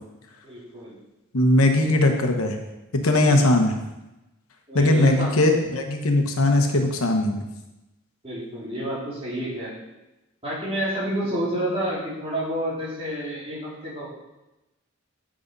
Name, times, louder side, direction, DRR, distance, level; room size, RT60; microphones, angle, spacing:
voice 1, 0.4-0.9 3.3-3.4 4.7-5.5 8.2-9.7 10.4-14.1, right 1 dB, 30° right, -7 dB, 3.5 m, -29 dB
voice 2, 1.3-2.6 3.0-3.7 4.7-7.4, left 1 dB, 90° left, 4 dB, 1.2 m, -19 dB
7.7 x 6.4 x 5.3 m, 0.98 s
head